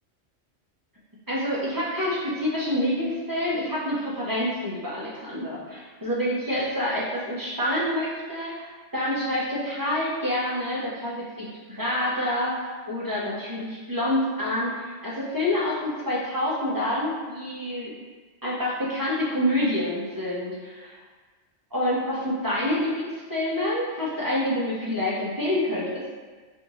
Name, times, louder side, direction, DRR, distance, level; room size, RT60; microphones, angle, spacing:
voice 1, 1.3-17.9 18.4-21.0 21.7-26.0, left 1 dB, 25° right, -7 dB, 0.5 m, -27 dB
4.1 x 2.5 x 2.9 m, 1.4 s
omnidirectional pair, 1.3 m